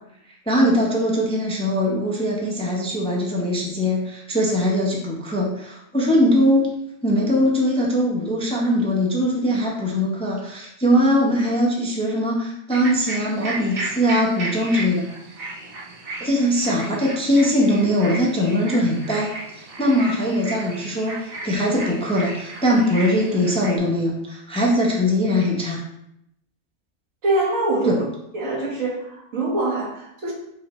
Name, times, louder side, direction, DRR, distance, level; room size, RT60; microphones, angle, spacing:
voice 1, 0.5-6.8 7.0-15.1 16.2-25.8 27.8-28.0, equal, 5° left, -2 dB, 0.4 m, -21 dB
sound 1, 12.7-23.8, right 2 dB, 55° right, 0.8 m, -34 dB
voice 2, 27.2-28.0 28.3-30.3, right 2 dB, 85° right, -4 dB, 1.6 m, -24 dB
4.1 x 3.8 x 2.9 m, 0.78 s
omnidirectional pair, 1.4 m